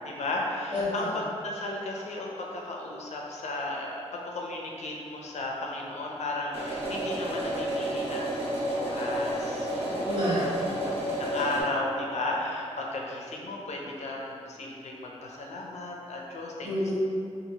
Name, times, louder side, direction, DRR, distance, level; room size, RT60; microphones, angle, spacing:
voice 1, 0.0-10.0 10.4-10.5 11.2-16.7, left 2 dB, 75° left, -1 dB, 0.4 m, -34 dB
voice 2, 0.7-1.2 9.8-10.8 16.6-16.9, left 1 dB, 45° right, -12 dB, 1.2 m, -30 dB
sound 1, 6.5-11.6, right 1 dB, 60° right, 0.7 m, -31 dB
2.8 x 2.4 x 2.7 m, 2.5 s
wide cardioid pair, 150°, 12 cm